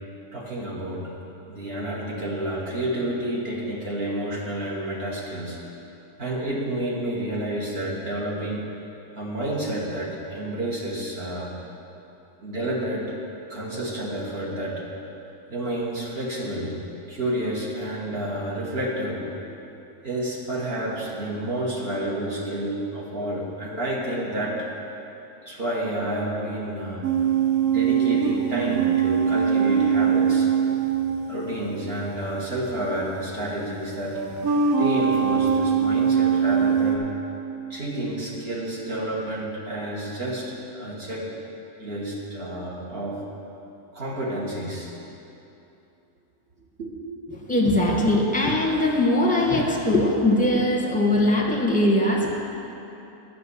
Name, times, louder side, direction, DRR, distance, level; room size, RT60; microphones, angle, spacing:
voice 1, 0.3-1.1 1.5-5.6 6.2-8.7 9.1-11.5 12.4-13.1 13.5-14.9 15.5-16.7 17.1-19.6 20.0-24.7 25.4-27.1 27.6-30.7 31.3-34.3 34.8-37.1 37.7-41.3 41.8-43.2 43.9-44.9 46.8-46.9, right 1 dB, 40° right, -4 dB, 1.6 m, -30 dB
sound 1, 27.0-31.9 33.1-33.2 34.1-37.0, right 7 dB, 70° right, 1.3 m, -22 dB
voice 2, 47.3-52.4, left 1 dB, 5° left, -2 dB, 1.1 m, -21 dB
10.0 x 6.0 x 8.3 m, 2.9 s
omnidirectional pair, 1.7 m